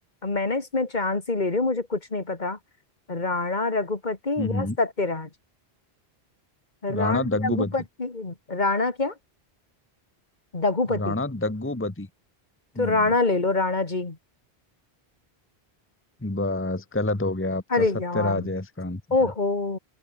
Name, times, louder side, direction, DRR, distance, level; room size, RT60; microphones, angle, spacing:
voice 1, 0.2-2.6 3.1-5.3 6.8-9.1 10.5-11.2 12.8-14.2 17.7-18.5 19.1-19.8, left 3 dB, 45° left, 2.3 m, -25 dB
voice 2, 4.4-4.8 6.9-7.7 10.9-12.1 12.7-13.1 16.2-17.8 18.1-19.0, left 2 dB, 10° left, 1.2 m, -27 dB
open air
omnidirectional pair, 1.1 m